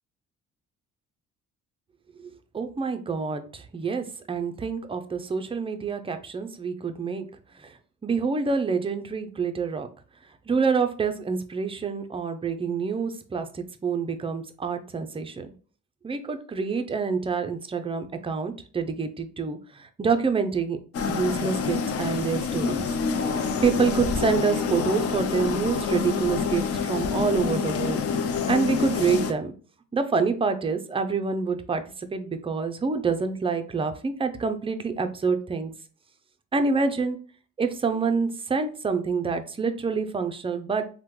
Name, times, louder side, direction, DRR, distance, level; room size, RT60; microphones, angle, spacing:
voice 1, 2.2-7.3 7.6-9.9 10.5-15.5 16.0-20.8 21.1-22.9 23.6-28.0 28.3-29.5 29.9-35.7 36.5-37.2 37.6-40.9, right 5 dB, 20° right, 8 dB, 0.4 m, -27 dB
sound 1, 20.9-29.3, left 5 dB, 50° left, 0.5 m, -27 dB
3.4 x 2.1 x 3.0 m, 0.40 s
cardioid pair, 90°, 30 cm